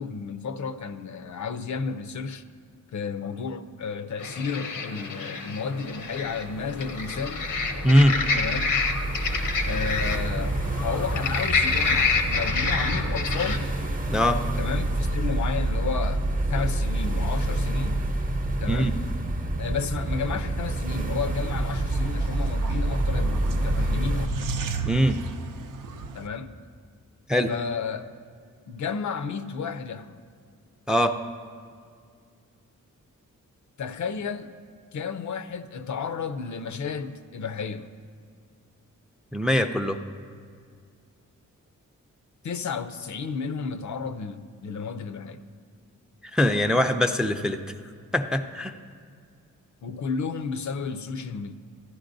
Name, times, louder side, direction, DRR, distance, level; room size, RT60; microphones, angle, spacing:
voice 1, 0.0-2.4 2.9-7.5 8.3-8.7 9.7-13.7 14.6-16.2 16.5-18.0 18.6-19.0 19.6-24.5 26.1-26.6 27.5-28.1 28.7-30.2 33.8-34.6 34.9-37.9 42.4-45.4 49.8-51.5, left 5 dB, 65° left, 0.5 m, -32 dB
sound 1, 4.2-13.6, left 4 dB, 90° left, 0.9 m, -28 dB
sound 2, 6.3-24.3, right 1 dB, 25° right, 0.7 m, -28 dB
voice 2, 7.8-8.2 14.1-14.4 18.7-18.9 24.9-25.2 27.3-27.5 30.9-31.2 39.3-40.0 46.3-47.6 48.1-48.7, equal, ahead, 0.4 m, -21 dB
sound 3, 21.2-26.3, right 4 dB, 85° right, 0.6 m, -34 dB
15.0 x 11.0 x 2.6 m
wide cardioid pair, 95°, 31 cm